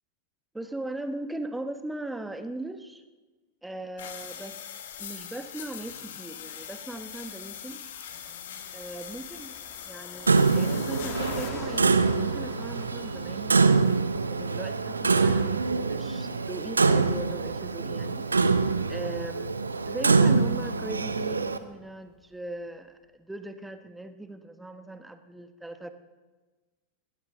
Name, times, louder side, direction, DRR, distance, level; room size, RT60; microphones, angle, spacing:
voice 1, 0.5-3.0 3.6-4.6 5.0-7.8 8.7-9.5 9.9-13.6 14.3-18.2 18.9-25.9, right 2 dB, 5° right, 8 dB, 1.3 m, -39 dB
sound 1, 4.0-11.5, left 9 dB, 60° left, 1.8 m, -42 dB
Car passing by, 5.9-21.3 21.9-22.0 22.2-22.4, left 8 dB, 35° left, 1.7 m, -49 dB
Clock, 10.3-21.6, right 4 dB, 75° right, 0.8 m, -25 dB
20.5 x 17.0 x 3.8 m, 1.3 s
figure-of-eight pair, 90°, 0 cm